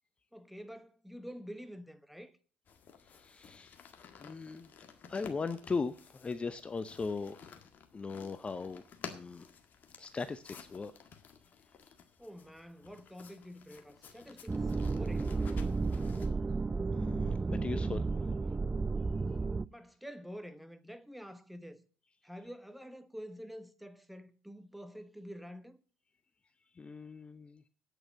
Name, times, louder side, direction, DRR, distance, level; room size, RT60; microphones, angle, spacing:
voice 1, 0.3-2.3 12.2-15.3 19.7-21.8 22.2-25.8, equal, ahead, 1.2 m, -48 dB
sound 1, 2.7-16.3, left 6 dB, 45° left, 1.8 m, -53 dB
voice 2, 3.1-3.7 4.2-4.7 5.1-7.4 7.9-8.8 9.1-9.4 10.0-10.9 16.9-18.0 26.8-27.6, left 4 dB, 25° left, 0.7 m, -38 dB
sound 2, 14.5-19.7, right 4 dB, 20° right, 0.4 m, -33 dB
8.9 x 7.8 x 8.5 m
hypercardioid pair, 60°, 4 cm